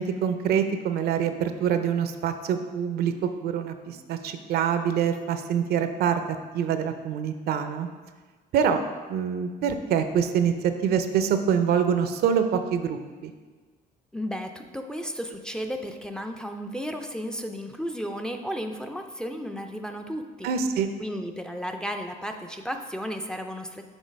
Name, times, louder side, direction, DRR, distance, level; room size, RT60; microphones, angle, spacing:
voice 1, 0.0-6.2 6.5-7.9 8.5-8.8 9.1-10.5 10.8-13.3 20.4-20.9, right 7 dB, 70° right, 8 dB, 0.6 m, -25 dB
voice 2, 14.1-20.5 21.0-23.8, equal, 5° left, 5 dB, 0.4 m, -34 dB
6.2 x 3.8 x 5.2 m, 1.4 s
cardioid pair, 110°, 17 cm